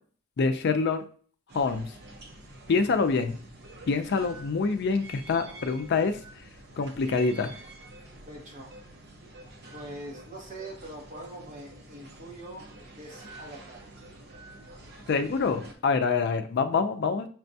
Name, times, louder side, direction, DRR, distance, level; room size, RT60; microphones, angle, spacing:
voice 1, 0.4-1.0 1.5-1.9 2.7-3.4 3.9-6.2 6.8-7.5 15.1-17.3, left 4 dB, 55° left, 8 dB, 0.4 m, -26 dB
sound 1, 1.5-15.7, right 1 dB, 55° right, 0.7 m, -48 dB
voice 2, 8.3-8.7 9.7-12.7 13.0-13.8, right 1 dB, 40° right, 0 dB, 1.1 m, -43 dB
5.9 x 2.2 x 2.6 m, 0.43 s
head